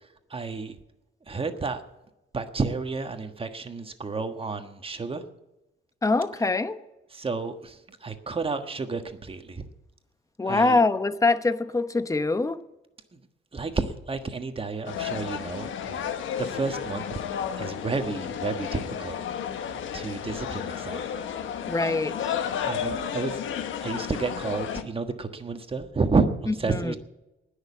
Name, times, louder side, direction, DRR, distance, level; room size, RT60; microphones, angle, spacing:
voice 1, 0.3-0.8 1.3-1.8 2.3-5.2 7.1-9.6 10.5-10.8 13.5-16.0 16.4-17.2 17.6-19.2 19.9-21.0 22.6-23.4 23.8-27.0, right 4 dB, 30° right, 7 dB, 1.4 m, -30 dB
voice 2, 6.0-6.8 10.4-12.6 21.7-22.4 26.7-27.0, left 3 dB, 15° left, 12 dB, 0.9 m, -24 dB
sound 1, 14.8-24.8, left 8 dB, 80° left, 1.3 m, -32 dB
19.5 x 6.6 x 8.3 m, 0.99 s
cardioid pair, 90°, 20 cm